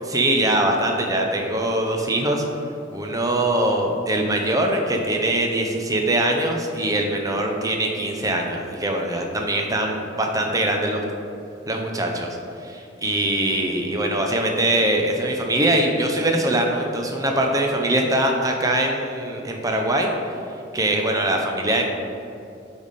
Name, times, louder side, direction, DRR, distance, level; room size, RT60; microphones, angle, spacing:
voice 1, 0.1-2.4 2.9-11.0 11.7-20.1 20.7-21.8, right 1 dB, 20° right, 2 dB, 0.6 m, -22 dB
8.4 x 3.5 x 4.1 m, 2.7 s
head